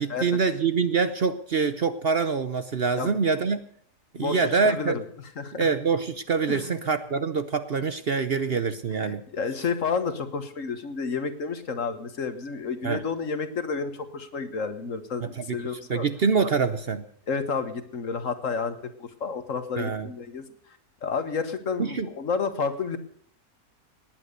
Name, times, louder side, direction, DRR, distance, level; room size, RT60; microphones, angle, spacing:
voice 1, 0.0-3.6 4.1-5.0 5.6-9.2 12.8-13.0 15.2-15.6 15.9-17.0 19.8-20.1 21.8-22.1, right 5 dB, 50° right, 12 dB, 0.9 m, -25 dB
voice 2, 4.2-5.0 5.4-5.7 6.5-6.7 9.0-16.1 17.3-20.4 21.0-23.0, left 5 dB, 60° left, 10 dB, 1.7 m, -30 dB
19.0 x 9.3 x 6.6 m, 0.62 s
omnidirectional pair, 1.6 m